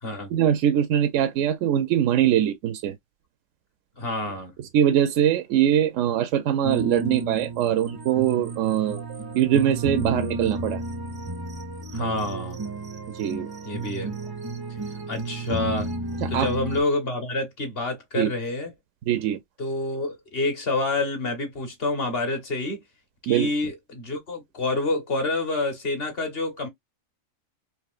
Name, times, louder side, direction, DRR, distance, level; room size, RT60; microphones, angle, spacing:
voice 1, 0.3-2.9 4.7-9.0 9.3-10.8 13.1-13.5 16.2-16.5 18.1-18.3 19.1-19.4 23.3-23.5, right 10 dB, 70° right, 0.8 m, -22 dB
voice 2, 4.0-4.5 11.9-12.7 13.6-14.1 15.1-15.9 16.3-18.7 19.6-22.8 23.2-26.7, left 2 dB, 45° left, 1.3 m, -28 dB
sound 1, 6.6-16.8, right 2 dB, 40° right, 0.3 m, -32 dB
4.7 x 2.8 x 2.4 m
omnidirectional pair, 1.5 m